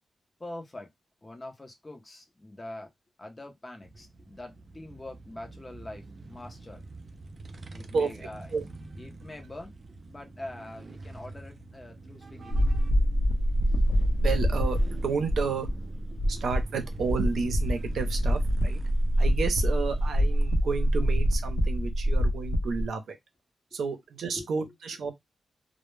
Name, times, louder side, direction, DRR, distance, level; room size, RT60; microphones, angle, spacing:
voice 1, 0.4-0.9 1.2-2.9 3.2-6.8 7.7-8.7 9.0-9.7 10.1-12.6 22.8-22.9 24.3-24.5, left 1 dB, 20° left, 0.6 m, -44 dB
sound 1, 3.8-21.9, right 3 dB, 40° right, 0.3 m, -46 dB
voice 2, 7.9-8.6 14.2-15.8 16.3-18.8 19.2-23.2 23.7-25.1, right 5 dB, 80° right, 0.6 m, -31 dB
sound 2, 12.5-22.9, equal, 65° left, 0.6 m, -25 dB
2.1 x 2.1 x 3.1 m
wide cardioid pair, 160°, 0 cm